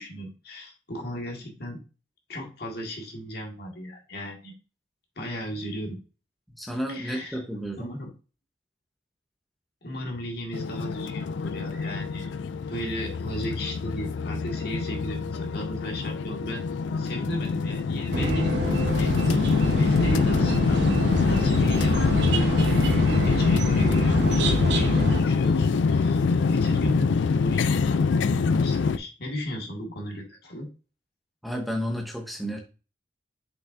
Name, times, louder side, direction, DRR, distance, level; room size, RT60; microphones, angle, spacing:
voice 1, 0.0-1.8 2.3-4.5 5.2-6.0 6.9-7.4 7.8-8.1 9.8-12.3 12.7-16.6 17.0-30.7, equal, 55° left, 0 dB, 1.9 m, -36 dB
voice 2, 6.6-7.9 31.4-32.6, equal, ahead, 1 dB, 1.0 m, -31 dB
sound 1, 10.5-29.0, left 4 dB, 75° left, 0.4 m, -24 dB
sound 2, 18.1-25.2, right 1 dB, 65° right, 1.1 m, -27 dB
6.6 x 5.6 x 2.6 m, 0.33 s
head